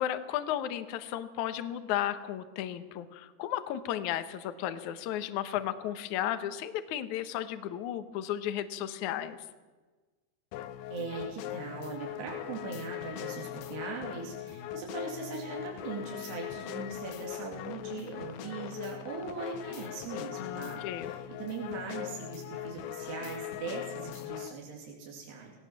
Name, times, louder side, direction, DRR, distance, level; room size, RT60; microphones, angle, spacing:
voice 1, 0.0-9.4 20.3-21.1, left 11 dB, 70° left, 10 dB, 1.9 m, -34 dB
sound 1, 10.5-24.5, left 12 dB, 85° left, 2.9 m, -40 dB
voice 2, 10.9-25.6, right 4 dB, 75° right, -1 dB, 4.8 m, -40 dB
19.5 x 18.0 x 7.4 m, 1.3 s
omnidirectional pair, 4.8 m